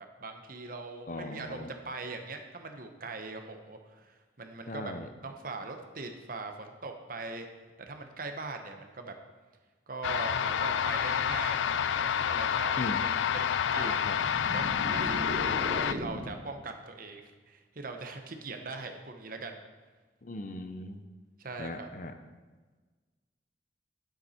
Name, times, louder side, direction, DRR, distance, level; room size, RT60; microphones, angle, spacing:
voice 1, 0.2-4.9 5.2-7.5 7.8-9.1 9.9-11.7 11.9-14.1 14.5-14.6 14.9-15.2 15.8-17.2 17.5-19.6 21.4-21.9, right 3 dB, 50° right, 5 dB, 0.9 m, -41 dB
voice 2, 1.1-1.7 4.7-5.1 12.8-13.0 13.8-14.2 20.2-21.0 21.6-22.1, left 2 dB, 45° left, 8 dB, 0.7 m, -38 dB
sound 1, 10.0-15.9, left 8 dB, 90° left, 0.3 m, -29 dB
sound 2, 14.0-16.5, right 1 dB, 75° right, 1.5 m, -37 dB
9.7 x 7.9 x 4.3 m, 1.3 s
head